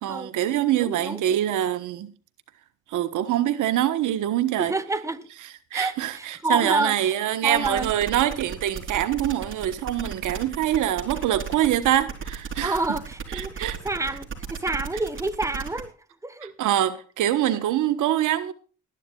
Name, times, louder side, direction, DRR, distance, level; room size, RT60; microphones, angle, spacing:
voice 1, 0.0-2.1 2.9-4.7 5.7-12.8 13.3-13.8 16.6-18.5, right 12 dB, 80° right, 1.3 m, -24 dB
voice 2, 0.8-1.2 4.6-5.3 5.7-7.1 7.4-7.9 12.6-15.9 16.2-16.5, right 2 dB, 10° right, 1.3 m, -28 dB
sound 1, 7.6-15.8, right 6 dB, 40° right, 3.5 m, -35 dB
20.5 x 10.5 x 2.4 m
cardioid pair, 90°, 30 cm